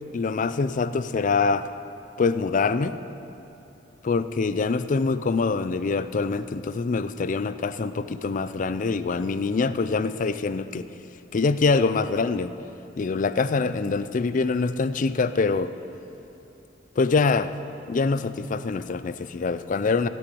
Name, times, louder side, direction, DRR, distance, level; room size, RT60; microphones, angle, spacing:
voice 1, 0.1-1.7 2.2-3.0 4.0-10.9 11.3-12.5 13.0-15.7 17.0-17.5 17.9-20.1, left 4 dB, 45° left, 13 dB, 0.4 m, -24 dB
16.5 x 7.8 x 7.0 m, 2.9 s
head